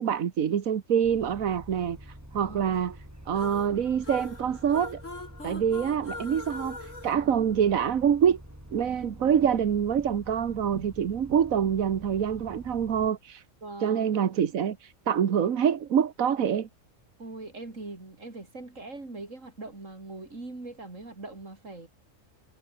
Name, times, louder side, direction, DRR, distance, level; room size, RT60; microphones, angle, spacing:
voice 1, 0.0-3.0 3.3-5.0 5.4-8.4 8.7-13.4 13.8-16.7, right 8 dB, 90° right, 1.6 m, -26 dB
Bus, 1.0-13.1, equal, 10° right, 5.3 m, -47 dB
voice 2, 2.4-2.8 13.6-14.1 17.2-21.9, right 2 dB, 70° right, 4.9 m, -41 dB
sound 1, 3.3-8.1, left 2 dB, 65° left, 5.2 m, -42 dB
omnidirectional pair, 1.4 m